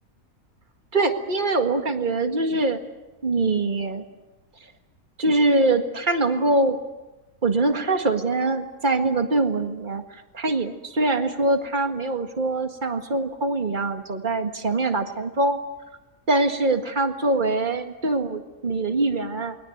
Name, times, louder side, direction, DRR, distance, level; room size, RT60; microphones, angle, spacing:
voice 1, 0.9-2.8 3.2-4.0 5.2-6.8 7.4-15.6 16.3-19.6, right 2 dB, 35° right, 6 dB, 1.9 m, -23 dB
28.5 x 22.0 x 8.0 m, 1.1 s
omnidirectional pair, 1.5 m